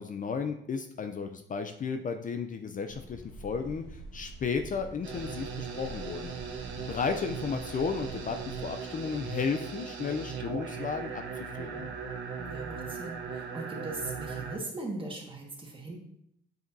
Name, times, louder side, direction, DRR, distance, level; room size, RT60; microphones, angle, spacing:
voice 1, 0.0-6.3 6.8-11.9, left 5 dB, 40° left, 7 dB, 0.5 m, -34 dB
sound 1, 2.9-8.7, right 3 dB, 5° left, 1.6 m, -47 dB
sound 2, 5.0-14.6, right 5 dB, 75° right, 1.2 m, -38 dB
voice 2, 12.4-16.0, right 2 dB, 25° right, 0 dB, 1.7 m, -39 dB
7.8 x 4.9 x 2.7 m, 0.73 s
cardioid pair, 90°, 20 cm